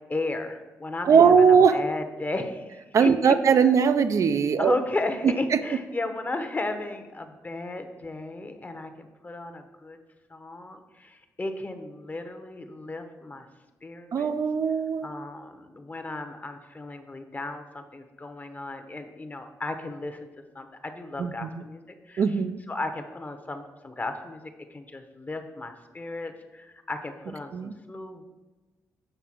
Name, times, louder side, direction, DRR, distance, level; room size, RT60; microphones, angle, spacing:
voice 1, 0.1-3.7 4.6-10.0 10.3-13.4 13.8-14.3 15.0-20.2 20.5-21.8 22.1-22.4 22.7-27.5 27.9-28.3, left 2 dB, 30° left, 7 dB, 0.9 m, -35 dB
voice 2, 1.1-1.8 2.9-4.7 5.5-5.6 14.1-15.1 21.2-21.5 22.2-22.6 27.5-27.7, right 6 dB, 60° right, 10 dB, 0.4 m, -20 dB
7.9 x 3.3 x 6.1 m, 1.2 s
cardioid pair, 70°, 6 cm